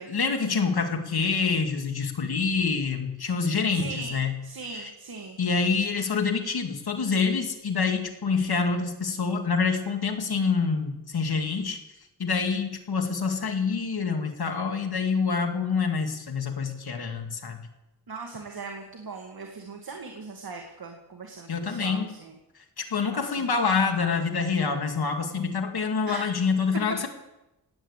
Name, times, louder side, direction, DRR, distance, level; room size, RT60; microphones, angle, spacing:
voice 1, 0.1-4.3 5.4-11.8 12.2-17.6 21.5-22.1 22.8-27.1, left 5 dB, 65° left, 4 dB, 2.3 m, -26 dB
voice 2, 3.7-5.4 18.1-22.4 23.1-23.5 26.1-26.3, right 4 dB, 60° right, 2 dB, 2.3 m, -39 dB
18.0 x 9.4 x 8.1 m, 0.95 s
wide cardioid pair, 90°, 41 cm